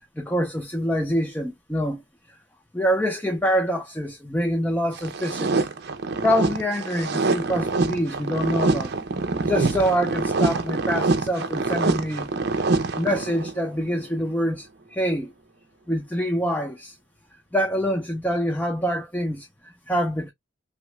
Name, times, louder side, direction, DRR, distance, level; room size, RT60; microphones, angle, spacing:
voice 1, 0.2-2.0 2.3-2.4 2.7-5.7 6.2-8.9 9.4-12.3 12.6-15.3 15.9-16.9 17.5-20.3, equal, 10° left, 0.6 m, -25 dB
sound 1, 5.0-13.6, right 3 dB, 55° right, 0.6 m, -25 dB
3.1 x 2.2 x 3.1 m
head